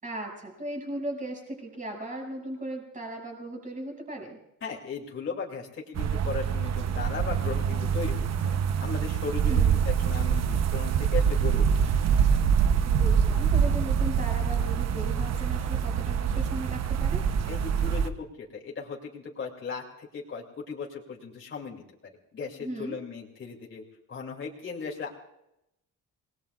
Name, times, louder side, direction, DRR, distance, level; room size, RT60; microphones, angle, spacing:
voice 1, 0.0-4.4 9.5-9.8 12.8-17.2 22.6-22.9, right 1 dB, 25° right, 0 dB, 6.5 m, -37 dB
voice 2, 4.6-11.6 11.9-12.1 17.5-21.8 22.3-23.8 24.1-25.1, left 5 dB, 35° left, -1 dB, 2.8 m, -37 dB
sound 1, 5.9-18.1, right 7 dB, 55° right, 0.9 m, -25 dB
28.5 x 20.0 x 2.5 m, 0.84 s
cardioid pair, 150°, 33 cm